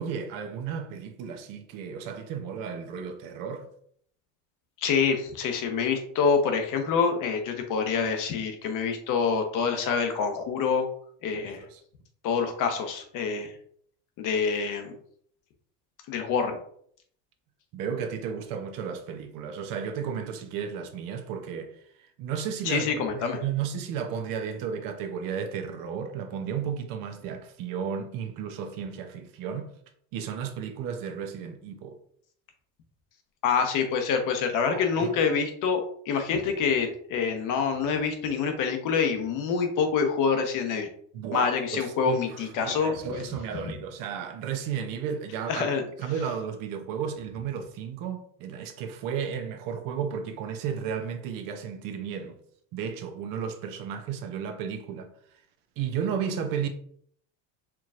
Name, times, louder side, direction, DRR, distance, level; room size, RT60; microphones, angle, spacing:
voice 1, 0.0-3.7 11.6-11.8 17.7-29.7 30.1-32.0 34.7-35.1 41.1-41.5 41.7-45.7 46.0-52.4 52.7-55.1 55.8-56.7, right 7 dB, 55° right, 0.7 m, -33 dB
voice 2, 4.8-10.9 11.2-11.6 12.2-13.5 14.2-14.9 16.1-16.6 22.7-23.4 33.4-40.9 41.3-42.9 45.5-45.8, left 6 dB, 50° left, 0.9 m, -26 dB
4.7 x 3.0 x 2.4 m
supercardioid pair, 110°, 40 cm